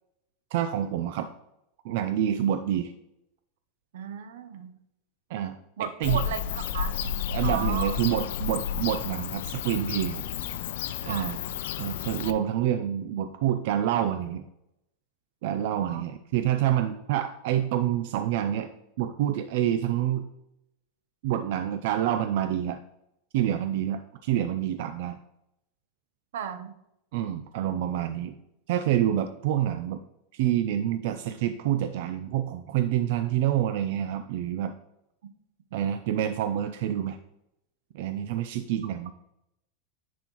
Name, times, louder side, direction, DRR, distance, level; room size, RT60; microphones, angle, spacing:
voice 1, 0.5-1.3 1.8-2.9 5.3-6.2 7.3-10.3 11.1-11.4 11.8-14.4 15.4-18.7 19.0-20.2 21.2-22.8 23.3-25.2 27.1-28.4 28.7-30.0 30.3-34.7 35.7-37.2 37.9-39.1, right 11 dB, 60° right, 8 dB, 0.4 m, -27 dB
voice 2, 3.9-4.7 5.8-7.0 7.4-8.0 11.0-11.5 15.7-16.0 26.3-26.8, right 7 dB, 85° right, 10 dB, 0.8 m, -35 dB
Bird / Cricket, 6.0-12.3, left 9 dB, 75° left, 0.5 m, -31 dB
10.0 x 4.3 x 3.0 m, 0.82 s
supercardioid pair, 160°, 0 cm